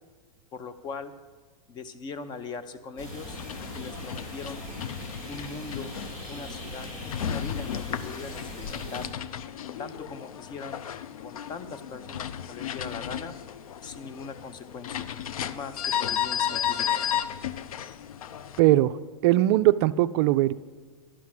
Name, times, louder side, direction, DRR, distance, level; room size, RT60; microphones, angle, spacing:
voice 1, 0.5-1.1 1.7-3.4 3.7-4.6 5.3-5.9 6.3-6.9 7.2-9.1 9.8-10.8 11.2-13.3 13.8-15.1 15.5-17.0, left 4 dB, 25° left, 12 dB, 0.6 m, -40 dB
sound 1, 3.0-9.1, left 1 dB, 65° left, 4.0 m, -40 dB
sound 2, 3.3-18.6, left 9 dB, 90° left, 0.5 m, -34 dB
voice 2, 18.6-18.9 19.2-20.5, right 15 dB, 50° right, 13 dB, 0.4 m, -20 dB
11.5 x 5.9 x 7.6 m, 1.4 s
hypercardioid pair, 135°, 18 cm